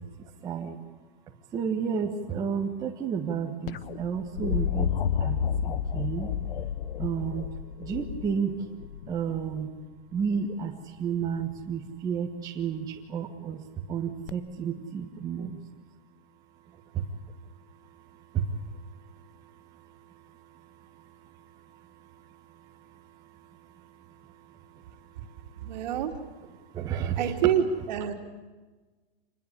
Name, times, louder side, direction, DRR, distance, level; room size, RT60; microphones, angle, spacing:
voice 1, 0.4-0.8 1.5-4.9 5.2-6.3 7.0-7.5 7.8-8.7 9.1-9.7 10.1-13.6 13.9-15.6 16.9-17.0 18.3-18.4 26.7-27.3, right 7 dB, 10° right, -1 dB, 1.4 m, -31 dB
sound 1, 3.7-9.6 11.2-11.7 14.3-14.4, left 8 dB, 60° left, 1.1 m, -31 dB
voice 2, 25.6-26.1 27.2-28.1, right 9 dB, 45° right, 5 dB, 2.9 m, -27 dB
27.0 x 21.0 x 8.4 m, 1.3 s
hypercardioid pair, 165°, 31 cm